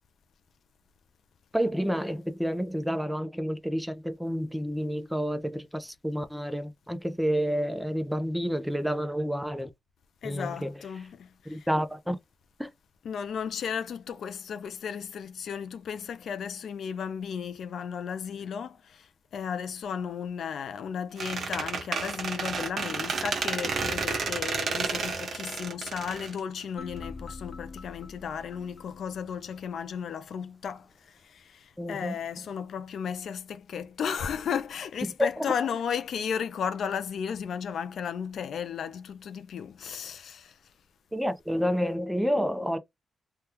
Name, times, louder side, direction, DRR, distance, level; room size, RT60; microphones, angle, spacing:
voice 1, 1.5-9.7 10.2-10.7 11.5-12.2 12.6-12.7 31.8-32.2 35.2-35.4 41.1-42.8, equal, ahead, 0.5 m, -29 dB
voice 2, 10.2-11.7 13.0-40.6, left 7 dB, 70° left, 0.4 m, -34 dB
Squeak, 21.2-27.0, right 5 dB, 60° right, 0.9 m, -31 dB
sound 1, 26.8-29.8, left 4 dB, 40° left, 0.9 m, -44 dB
3.4 x 2.3 x 2.8 m
cardioid pair, 110°, 0 cm